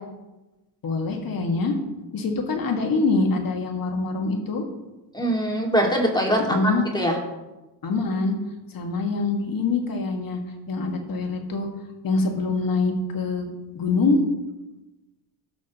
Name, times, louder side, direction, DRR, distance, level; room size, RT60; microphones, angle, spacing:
voice 1, 0.8-1.7 2.1-4.7 6.5-6.8 7.8-8.3 8.7-10.4 10.7-11.7 12.0-14.2, left 3 dB, 45° left, 3 dB, 1.9 m, -24 dB
voice 2, 5.1-7.1, equal, 10° left, 0 dB, 2.2 m, -23 dB
17.0 x 6.2 x 3.0 m, 1.1 s
cardioid pair, 95°, 48 cm